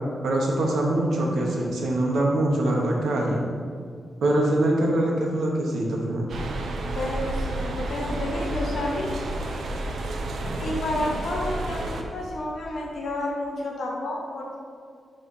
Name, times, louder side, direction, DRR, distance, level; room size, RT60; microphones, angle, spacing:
voice 1, 0.2-3.4 4.2-6.4, right 1 dB, 80° right, -1 dB, 1.0 m, -23 dB
sound 1, 6.3-12.0, right 2 dB, 60° right, 0.6 m, -31 dB
voice 2, 6.9-9.2 10.4-14.6, left 1 dB, 65° left, -2 dB, 1.2 m, -30 dB
6.1 x 3.3 x 5.6 m, 2.1 s
wide cardioid pair, 170°, 0 cm